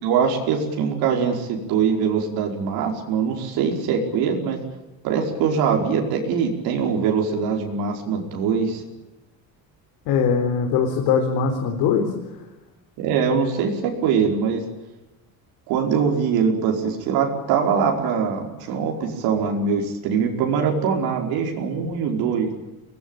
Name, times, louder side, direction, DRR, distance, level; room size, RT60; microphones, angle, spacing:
voice 1, 0.0-4.6 5.0-8.8 13.0-14.7 15.7-22.5, right 6 dB, 85° right, 1 dB, 5.0 m, -22 dB
voice 2, 10.1-12.1, left 6 dB, 90° left, 2 dB, 4.2 m, -21 dB
24.5 x 20.0 x 9.0 m, 1.0 s
cardioid pair, 160°, 36 cm